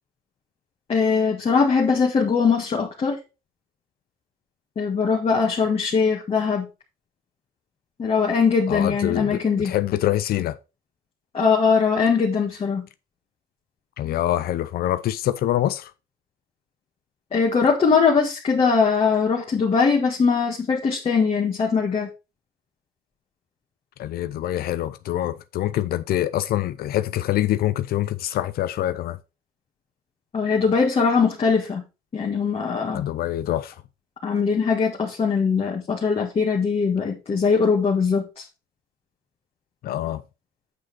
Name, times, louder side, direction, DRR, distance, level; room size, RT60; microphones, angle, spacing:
voice 1, 0.9-3.2 4.8-6.7 8.0-9.7 11.3-12.9 17.3-22.1 30.3-31.8 32.1-33.0 34.2-38.4, left 5 dB, 35° left, 1.7 m, -21 dB
voice 2, 8.7-10.6 14.0-15.9 24.0-29.2 32.9-33.8 39.8-40.2, left 13 dB, 65° left, 0.6 m, -25 dB
8.5 x 5.0 x 4.2 m
cardioid pair, 110°, 17 cm